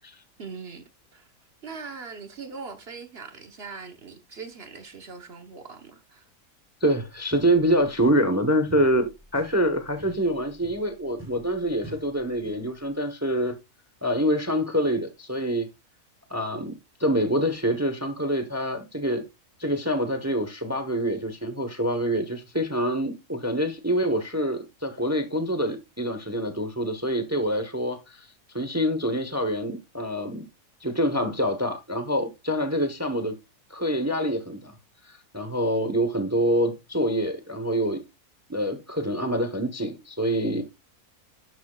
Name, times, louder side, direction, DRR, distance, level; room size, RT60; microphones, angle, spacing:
voice 1, 0.4-0.8 1.1-1.3 1.6-6.2, right 5 dB, 45° right, 1.1 m, -41 dB
voice 2, 6.8-13.6 14.0-15.7 16.3-19.2 19.6-28.3 28.5-30.4 30.8-33.4 33.7-34.7 35.0-38.0 38.5-40.6, equal, 15° right, 0.7 m, -26 dB
sound 1, 7.3-8.4 8.7-12.8, right 2 dB, 10° left, 2.4 m, -47 dB
11.0 x 6.8 x 2.3 m
omnidirectional pair, 1.6 m